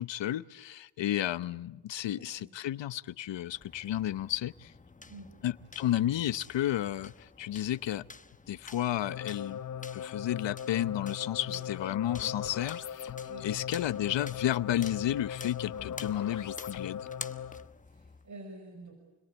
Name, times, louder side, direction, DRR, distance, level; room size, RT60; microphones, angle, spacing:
voice 1, 0.0-4.7 5.4-8.0 8.5-9.6 9.9-13.1 13.4-17.1, left 12 dB, 65° left, 1.0 m, -32 dB
voice 2, 2.0-2.5 5.0-5.4 11.4-11.6 13.3-13.5 17.9-18.9, right 2 dB, 35° right, 5.8 m, -49 dB
sound 1, 3.5-18.3, left 3 dB, 15° left, 1.1 m, -50 dB
sound 2, 8.9-17.7, left 8 dB, 40° left, 0.8 m, -39 dB
30.0 x 21.5 x 8.3 m
cardioid pair, 120°, 48 cm